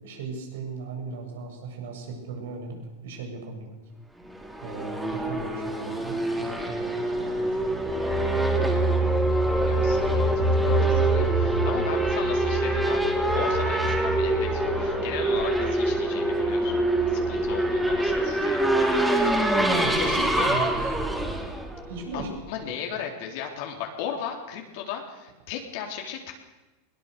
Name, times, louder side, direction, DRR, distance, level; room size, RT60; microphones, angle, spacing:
voice 1, 0.0-3.8 4.6-7.8 19.8-20.9 21.9-22.3, right 4 dB, 75° right, 2 dB, 7.4 m, -37 dB
Race car auto racing / Accelerating revving vroom, 4.3-22.4, right 1 dB, 5° right, 3.7 m, -26 dB
sound 1, 7.7-18.3 18.7-18.8, right 2 dB, 10° left, 3.8 m, -28 dB
voice 2, 9.4-10.3 10.6-19.3 20.0-20.6 22.1-26.3, left 8 dB, 65° left, 2 dB, 3.8 m, -36 dB
21.0 x 20.0 x 7.0 m, 1.1 s
hypercardioid pair, 105°, 0 cm